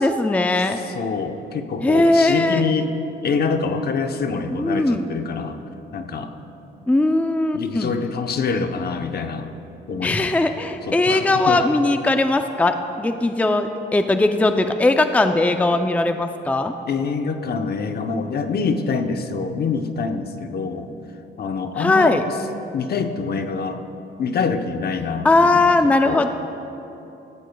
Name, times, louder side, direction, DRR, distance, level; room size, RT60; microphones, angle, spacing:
voice 1, 0.0-0.8 1.8-2.6 4.5-5.0 6.9-7.9 10.0-16.7 21.8-22.2 25.2-26.3, left 2 dB, 5° left, 7 dB, 0.5 m, -19 dB
voice 2, 0.6-2.9 3.2-5.6 5.9-6.3 7.5-9.5 9.9-10.3 10.8-11.6 16.9-20.9 21.4-22.4 22.7-23.8 24.2-26.3, left 5 dB, 50° left, 7 dB, 0.9 m, -25 dB
17.0 x 14.0 x 2.3 m, 2.9 s
cardioid pair, 90°, 20 cm